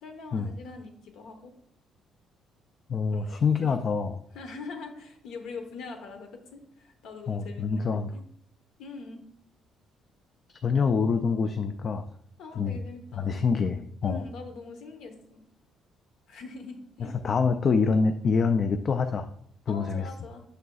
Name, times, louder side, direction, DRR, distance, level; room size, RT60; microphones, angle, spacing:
voice 1, 0.0-1.5 3.1-3.8 4.3-8.2 8.8-9.2 12.4-13.4 14.0-15.4 16.3-17.2 19.7-20.4, left 4 dB, 75° left, 5 dB, 1.0 m, -43 dB
voice 2, 2.9-4.2 7.3-8.1 10.6-12.1 12.6-12.8 13.2-14.2 17.0-19.3 19.7-20.1, left 5 dB, 35° left, 7 dB, 0.3 m, -26 dB
6.6 x 6.2 x 2.3 m, 0.67 s
cardioid pair, 145°, 0 cm